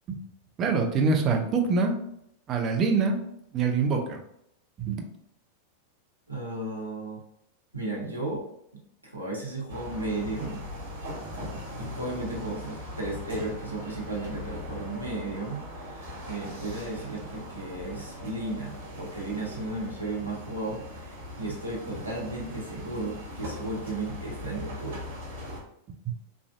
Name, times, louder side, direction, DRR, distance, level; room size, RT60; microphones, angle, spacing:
voice 1, 0.6-2.0 2.5-3.2 3.5-4.2 4.8-5.0 26.1-26.2, right 4 dB, 30° right, 3 dB, 0.5 m, -25 dB
voice 2, 6.3-7.2 7.7-8.4 9.0-10.6 11.8-25.0, right 2 dB, 85° right, -3 dB, 0.8 m, -34 dB
sound 1, 9.7-25.6, left 1 dB, 65° right, 1.1 m, -40 dB
3.1 x 2.4 x 2.4 m, 0.74 s
figure-of-eight pair, 90°, 0 cm